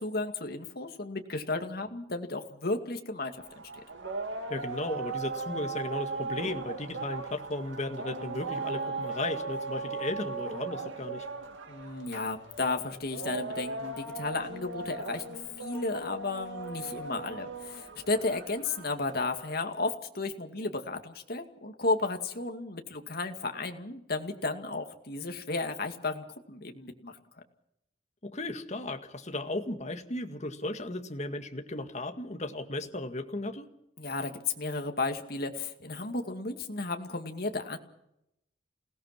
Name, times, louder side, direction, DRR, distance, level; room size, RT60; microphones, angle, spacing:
voice 1, 0.0-3.3 11.8-27.2 34.0-37.8, left 3 dB, 55° left, 5 dB, 2.3 m, -33 dB
sound 1, 3.3-19.7, right 3 dB, 90° right, 2.0 m, -38 dB
voice 2, 4.5-11.3 28.2-33.7, left 2 dB, 40° left, 6 dB, 1.9 m, -35 dB
28.5 x 17.5 x 6.0 m, 0.81 s
head